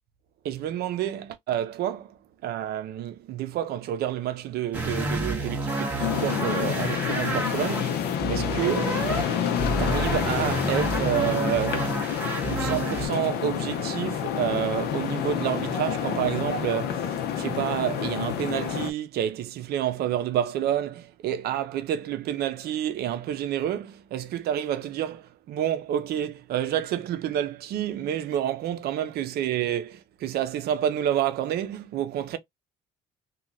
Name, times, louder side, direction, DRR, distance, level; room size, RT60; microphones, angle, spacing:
voice 1, 0.4-9.0 9.7-11.9 12.6-32.4, right 10 dB, 70° right, 0.6 m, -29 dB
sound 1, 4.7-13.1, right 2 dB, 10° right, 1.4 m, -30 dB
sound 2, 6.0-18.9, left 8 dB, 75° left, 0.6 m, -28 dB
3.0 x 2.3 x 2.5 m
cardioid pair, 110°, 17 cm